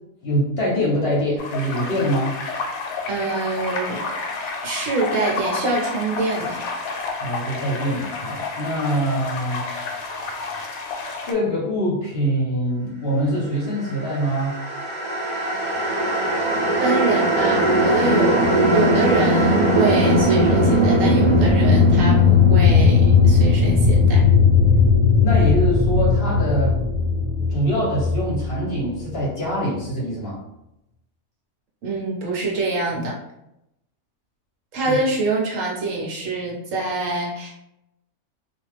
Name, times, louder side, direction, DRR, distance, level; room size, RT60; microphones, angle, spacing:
voice 1, 0.2-2.4 7.2-9.7 11.3-14.6 25.2-26.8 27.5-30.4 34.8-35.0, equal, 50° left, -5 dB, 0.9 m, -24 dB
sound 1, 1.4-11.3, left 3 dB, 75° left, 1.0 m, -30 dB
voice 2, 3.1-4.0 4.6-6.6 16.8-24.3 31.8-33.2 34.7-37.5, right 2 dB, 65° right, -2 dB, 1.1 m, -25 dB
sound 2, 14.0-29.3, left 3 dB, 45° right, 0.6 m, -18 dB
2.5 x 2.3 x 3.2 m, 0.85 s
omnidirectional pair, 1.5 m